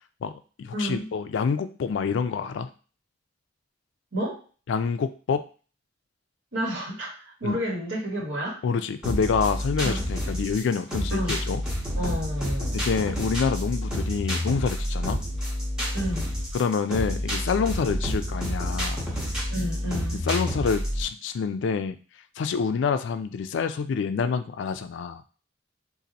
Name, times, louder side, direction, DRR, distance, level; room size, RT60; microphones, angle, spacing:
voice 1, 0.2-2.7 4.7-5.4 7.4-7.6 8.6-11.7 12.7-15.2 16.5-19.0 20.3-22.0 22.4-25.2, left 5 dB, 65° left, 10 dB, 0.3 m, -27 dB
voice 2, 0.7-1.1 4.1-4.4 6.5-8.6 9.8-10.0 11.1-11.4 11.9-12.8 15.9-16.3 19.5-20.2, equal, 85° right, -3 dB, 1.5 m, -30 dB
sound 1, 9.0-21.0, equal, 5° right, 1.0 m, -29 dB
2.7 x 2.5 x 3.9 m, 0.38 s
head